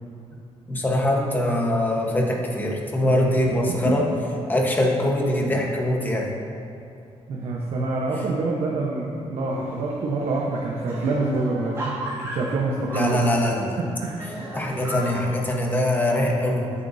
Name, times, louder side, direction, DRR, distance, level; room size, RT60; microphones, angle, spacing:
voice 1, 0.7-4.1 4.5-6.3 12.9-13.8 14.5-16.7, left 1 dB, 15° left, -1 dB, 1.3 m, -23 dB
voice 2, 3.0-3.6 7.3-13.2 13.9-14.2, right 2 dB, 65° right, -3 dB, 1.1 m, -26 dB
sound 1, 9.5-9.9 10.2-10.3 10.6-13.7 14.2-15.3, right 1 dB, 25° right, 2.4 m, -35 dB
13.5 x 8.3 x 2.8 m, 2.7 s
cardioid pair, 150°, 11 cm